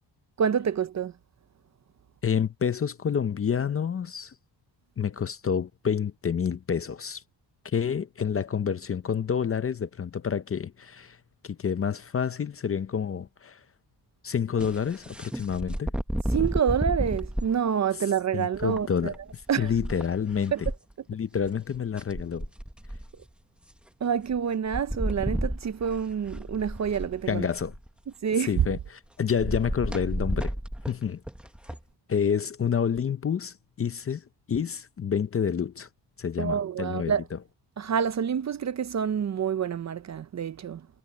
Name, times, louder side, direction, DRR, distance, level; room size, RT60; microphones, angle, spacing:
voice 1, 0.4-1.1 16.3-19.1 19.5-19.7 20.5-20.6 24.0-27.5 28.2-28.6 36.4-37.2 37.8-40.9, right 7 dB, 40° right, 0.5 m, -27 dB
voice 2, 2.2-4.3 5.0-7.2 7.6-11.2 11.4-13.6 14.2-15.9 18.3-20.5 21.1-22.5 27.3-27.7 28.4-30.6 30.9-31.2 32.1-35.9 36.2-37.4, left 7 dB, 30° left, 0.5 m, -28 dB
sound 1, 14.6-17.5 18.5-20.8 21.5-21.6 21.7-23.2 24.3-24.4 24.7-27.9 29.4-31.8, equal, ahead, 0.8 m, -32 dB
wide cardioid pair, 175°, 44 cm